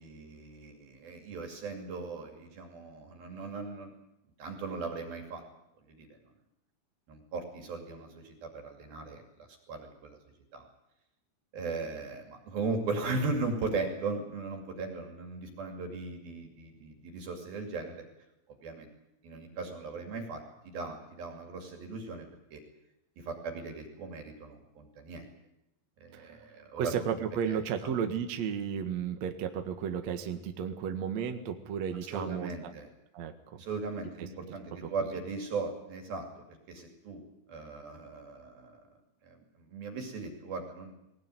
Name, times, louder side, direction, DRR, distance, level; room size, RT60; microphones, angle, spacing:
voice 1, 0.0-3.9 4.4-5.4 5.9-6.1 7.1-10.2 10.5-10.6 11.5-18.0 18.6-18.9 19.2-22.6 23.2-25.2 26.0-27.2 27.5-27.9 32.1-32.9 33.6-37.2 37.5-38.8 39.2-41.0, right 3 dB, 50° right, 3 dB, 4.0 m, -38 dB
voice 2, 26.8-32.5 33.1-33.3, right 7 dB, 75° right, 6 dB, 1.5 m, -33 dB
20.5 x 19.0 x 9.3 m, 0.88 s
omnidirectional pair, 5.9 m